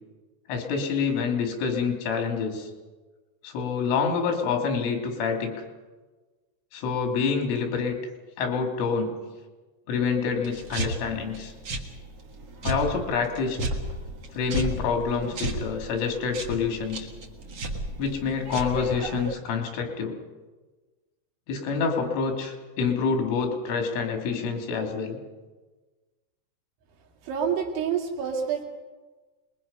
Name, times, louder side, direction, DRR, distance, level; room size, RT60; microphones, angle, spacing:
voice 1, 0.5-2.7 3.4-5.5 6.7-8.0 8.4-9.1 9.9-11.5 12.6-13.6 14.3-17.1 18.0-20.2 21.5-25.2, left 5 dB, 85° left, 2 dB, 5.3 m, -27 dB
sound 1, 10.4-19.3, right 1 dB, 55° right, 1.7 m, -34 dB
voice 2, 27.2-28.7, right 7 dB, 75° right, 1 dB, 4.6 m, -27 dB
26.5 x 21.5 x 5.5 m, 1.3 s
omnidirectional pair, 5.5 m